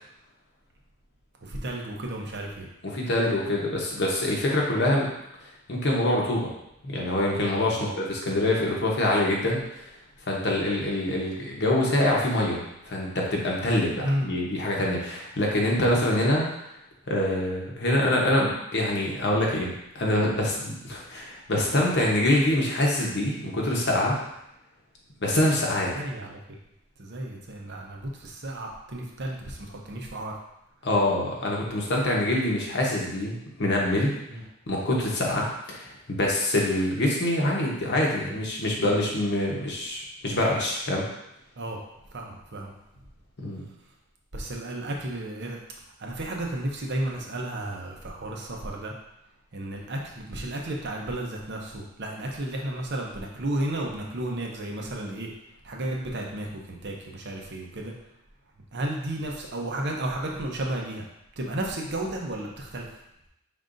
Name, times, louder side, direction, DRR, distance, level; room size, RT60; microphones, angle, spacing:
voice 1, 1.4-2.7 7.7-8.0 14.0-14.3 15.8-16.0 25.9-26.4 27.0-30.3 34.3-34.4 41.6-41.8 42.1-42.7 44.3-45.6 46.0-48.9 49.5-55.3 55.6-57.9 58.7-61.0 61.4-62.9, right 1 dB, 50° right, 0 dB, 0.7 m, -33 dB
voice 2, 2.8-5.1 5.7-6.5 6.8-9.8 10.3-16.5 17.1-24.2 25.2-26.0 30.8-34.1 34.7-41.1 43.4-43.6, left 1 dB, 50° left, -2 dB, 1.0 m, -25 dB
5.3 x 3.8 x 2.6 m, 0.82 s
head